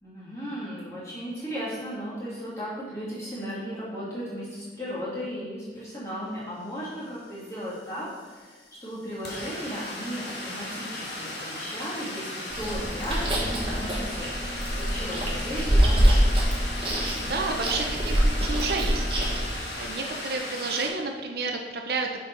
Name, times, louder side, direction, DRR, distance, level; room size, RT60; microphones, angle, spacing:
voice 1, 0.0-16.2, equal, 15° left, -9 dB, 2.2 m, -36 dB
sound 1, 7.2-7.3 7.5-20.9, left 1 dB, 70° left, 1.3 m, -36 dB
Chewing mastication, 12.5-19.5, equal, 30° right, 1.3 m, -25 dB
voice 2, 17.1-19.0 19.7-22.2, right 3 dB, 60° right, 3 dB, 0.5 m, -30 dB
6.2 x 4.6 x 4.5 m, 1.4 s
head